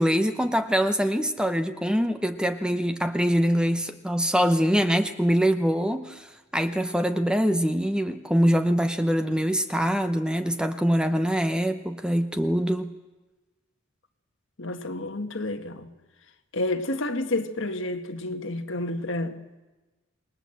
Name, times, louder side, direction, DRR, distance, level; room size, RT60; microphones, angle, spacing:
voice 1, 0.0-12.9, equal, 5° right, 0.8 m, -24 dB
voice 2, 14.6-15.9 16.5-19.4, left 2 dB, 65° left, 1.7 m, -30 dB
28.0 x 20.0 x 7.8 m
head